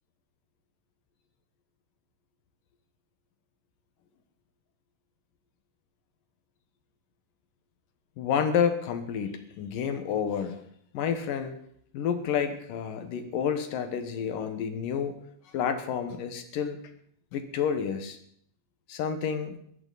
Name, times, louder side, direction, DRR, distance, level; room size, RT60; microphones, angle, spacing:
voice 1, 8.2-10.6 10.9-11.5 11.9-15.2 15.5-16.8 17.3-18.2 18.9-19.6, left 7 dB, 75° left, 8 dB, 2.9 m, -29 dB
20.0 x 14.0 x 4.1 m, 0.65 s
omnidirectional pair, 4.0 m